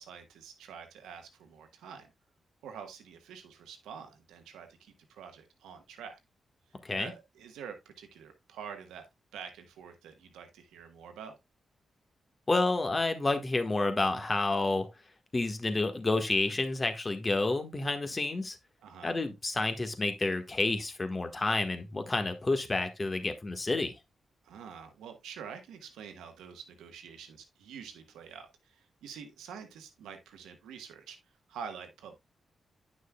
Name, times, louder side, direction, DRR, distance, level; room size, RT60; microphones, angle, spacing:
voice 1, 0.0-2.1 2.6-6.2 7.0-9.1 9.3-11.3 18.8-19.2 24.4-31.2 31.5-32.2, right 7 dB, 85° right, 1.2 m, -47 dB
voice 2, 12.5-14.9 15.3-18.6 19.0-23.9, left 2 dB, 35° left, 1.5 m, -29 dB
9.6 x 6.2 x 2.2 m
supercardioid pair, 40°, 0 cm